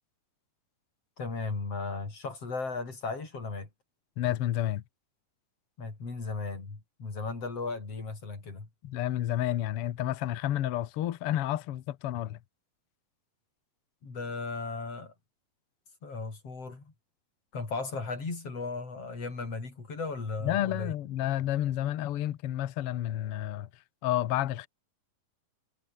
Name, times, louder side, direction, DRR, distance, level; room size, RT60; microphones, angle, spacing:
voice 1, 1.2-3.7 5.8-8.7 14.0-15.1 16.0-16.9 17.5-20.9, left 4 dB, 40° left, 6.5 m, -36 dB
voice 2, 4.2-4.8 8.8-12.4 20.4-23.7 24.0-24.7, left 12 dB, 90° left, 1.2 m, -30 dB
omnidirectional pair, 4.2 m